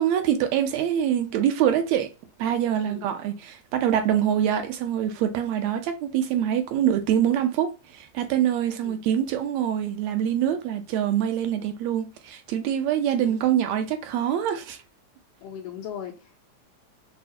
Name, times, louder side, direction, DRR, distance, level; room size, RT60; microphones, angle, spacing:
voice 1, 0.0-2.1 2.4-14.8, right 10 dB, 75° right, 1.8 m, -25 dB
voice 2, 2.8-3.1 8.8-9.0 13.2-13.3 15.4-16.4, left 9 dB, 75° left, 1.5 m, -38 dB
6.2 x 2.1 x 2.7 m
omnidirectional pair, 3.4 m